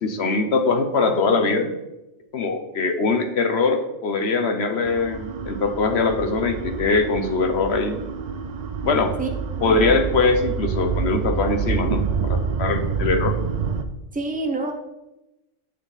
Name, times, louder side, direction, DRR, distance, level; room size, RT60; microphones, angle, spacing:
voice 1, 0.0-1.8 2.3-8.0 8.8-9.1 9.6-13.3, left 3 dB, 60° left, 6 dB, 1.1 m, -22 dB
sound 1, 4.8-13.8, right 6 dB, 50° right, 0.5 m, -27 dB
voice 2, 9.5-10.0 14.1-14.7, right 3 dB, 10° right, 3 dB, 0.9 m, -27 dB
9.8 x 6.3 x 4.0 m, 0.97 s
omnidirectional pair, 1.2 m